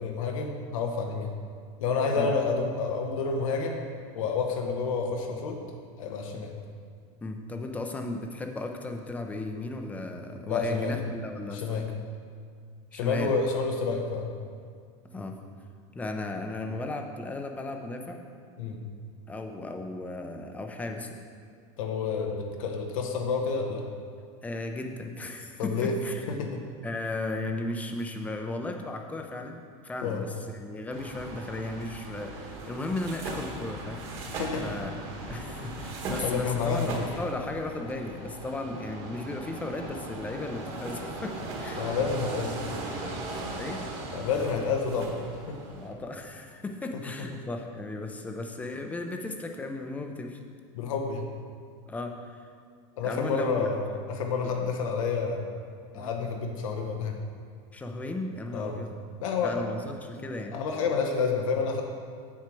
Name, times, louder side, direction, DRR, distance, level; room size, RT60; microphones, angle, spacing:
voice 1, 0.0-1.3 1.8-3.8 4.1-5.6 6.0-6.5 10.5-11.0 11.6-11.9 12.9-14.3 18.6-18.8 21.8-23.9 25.6-25.9 26.3-26.6 30.0-30.2 34.4-34.7 35.5-35.6 36.2-37.1 41.8-42.8 44.1-45.6 50.7-51.3 53.0-55.5 55.9-57.2 58.5-58.8 59.2-59.6 60.5-61.8, left 5 dB, 90° left, 2 dB, 1.0 m, -29 dB
voice 2, 7.2-11.8 12.9-13.3 15.1-15.4 15.9-18.2 19.3-21.2 24.4-26.3 26.8-34.0 34.6-41.3 41.6-41.9 43.5-43.8 45.7-50.4 51.9-52.4 53.0-53.7 54.6-54.7 55.9-56.1 57.7-58.9 59.4-60.5, left 2 dB, 10° left, 4 dB, 0.5 m, -35 dB
sound 1, 30.9-45.9, right 2 dB, 35° right, 1.4 m, -38 dB
7.5 x 7.3 x 4.6 m, 2.1 s
supercardioid pair, 160°, 17 cm